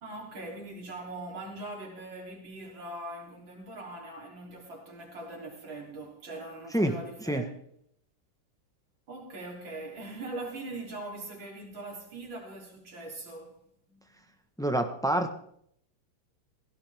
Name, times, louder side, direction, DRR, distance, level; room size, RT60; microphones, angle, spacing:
voice 1, 0.0-7.5 9.1-13.5 13.9-14.0, right 2 dB, 65° right, 4.1 m, -41 dB
voice 2, 14.6-15.4, right 1 dB, 5° left, 0.6 m, -27 dB
17.5 x 16.0 x 3.6 m
omnidirectional pair, 2.3 m